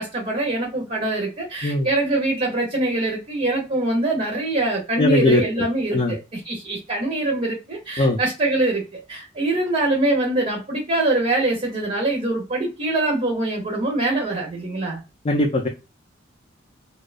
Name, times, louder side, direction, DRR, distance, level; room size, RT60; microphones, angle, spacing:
voice 1, 0.0-15.0, right 2 dB, 35° right, 0.6 m, -24 dB
voice 2, 5.0-5.6 5.9-6.1 8.0-8.2 15.2-15.7, left 1 dB, 35° left, 0.3 m, -19 dB
2.5 x 2.2 x 2.3 m
head